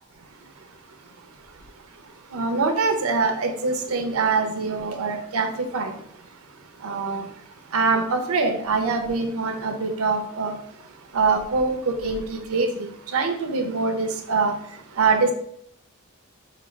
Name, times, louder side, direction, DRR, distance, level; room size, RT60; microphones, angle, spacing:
voice 1, 2.3-5.9 6.8-7.3 7.7-10.6 11.1-14.5 15.0-15.3, right 4 dB, 85° right, 0.6 m, -24 dB
5.0 x 2.3 x 3.2 m
head